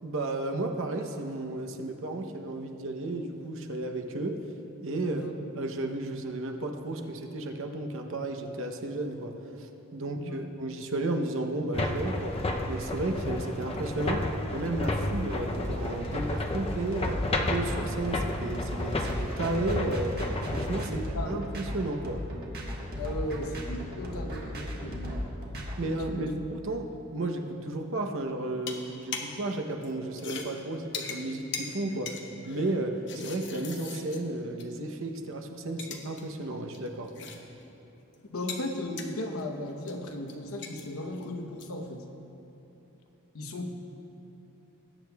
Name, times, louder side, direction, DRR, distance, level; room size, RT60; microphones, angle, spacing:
voice 1, 0.0-4.4 4.8-5.2 5.6-12.4 12.7-17.2 17.5-20.1 20.5-22.2 25.8-37.1, right 2 dB, 65° right, 4 dB, 0.8 m, -33 dB
voice 2, 5.0-5.3 10.1-10.4 20.7-21.6 23.0-25.4 25.8-26.3 38.3-42.0 43.3-43.7, left 1 dB, 85° left, 4 dB, 0.9 m, -36 dB
sound 1, 11.7-20.8, left 2 dB, 30° left, 0.6 m, -32 dB
sound 2, 15.0-25.7, left 1 dB, 50° right, 1.4 m, -36 dB
sound 3, 28.6-29.4 29.7-34.8 35.1-35.2 35.6-36.2 36.5-37.7 38.0-41.8, left 5 dB, 60° left, 0.9 m, -41 dB
20.0 x 8.7 x 2.3 m, 2.9 s
head